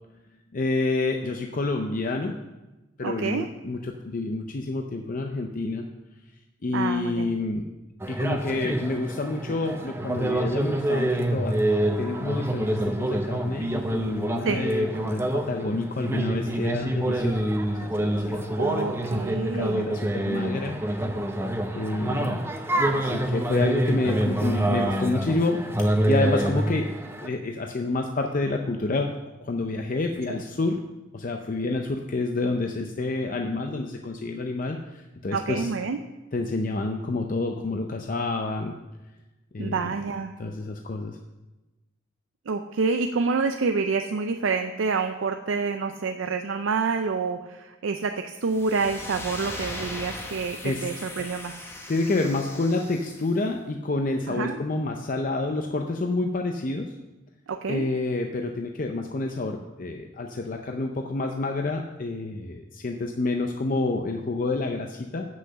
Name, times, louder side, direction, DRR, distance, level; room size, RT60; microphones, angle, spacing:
voice 1, 0.5-2.4 3.0-5.9 6.6-7.7 8.1-11.6 12.0-17.5 17.8-18.5 19.4-20.7 21.7-22.5 22.9-26.9 27.2-29.1 29.4-30.8 31.1-35.7 36.3-38.7 39.5-39.9 40.4-41.2 50.6-50.9 51.9-56.9 57.7-65.3, left 2 dB, 45° left, 3 dB, 0.5 m, -28 dB
voice 2, 3.0-3.5 6.7-7.3 14.4-14.6 18.6-19.8 30.3-30.4 35.3-36.0 39.6-40.3 42.5-51.5 54.3-54.6 57.5-57.9, right 4 dB, 85° right, 6 dB, 0.5 m, -28 dB
sound 1, 8.0-27.3, right 1 dB, 10° right, 0.7 m, -26 dB
sound 2, 48.4-53.4, left 2 dB, 15° left, 1.0 m, -39 dB
7.8 x 6.3 x 6.6 m, 1.1 s
head